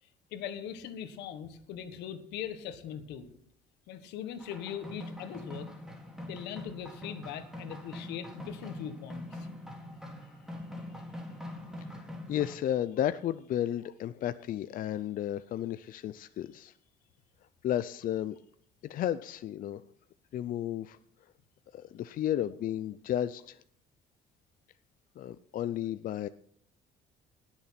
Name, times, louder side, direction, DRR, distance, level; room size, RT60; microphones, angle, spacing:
voice 1, 0.0-3.3 3.9-5.7 6.3-9.5, left 9 dB, 85° left, 10 dB, 1.5 m, -41 dB
sound 1, 4.4-12.6, left 1 dB, 5° right, 3.0 m, -43 dB
voice 2, 11.8-16.7 17.6-18.4 18.8-19.8 20.3-21.0 21.7-23.6 25.2-26.3, left 11 dB, 55° left, 13 dB, 0.5 m, -33 dB
19.0 x 7.2 x 5.8 m, 0.62 s
cardioid pair, 110°, 17 cm